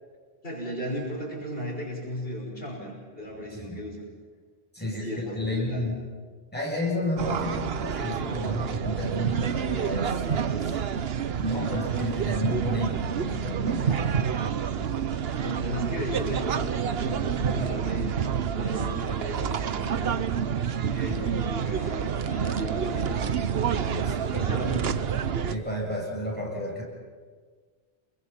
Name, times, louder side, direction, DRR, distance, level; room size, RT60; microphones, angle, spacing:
voice 1, 0.4-4.0 4.8-5.9 11.5-11.9 13.8-18.1 18.5-20.2 20.8-25.2, equal, 65° left, -3 dB, 6.0 m, -36 dB
voice 2, 4.7-6.0 6.5-10.8 11.4-14.0 21.0-21.2 23.9-24.8 25.5-26.8, left 1 dB, 10° left, -4 dB, 7.8 m, -32 dB
sound 1, 7.2-25.5, right 7 dB, 75° right, 1.1 m, -28 dB
28.5 x 23.0 x 5.9 m, 1.5 s
omnidirectional pair, 1.0 m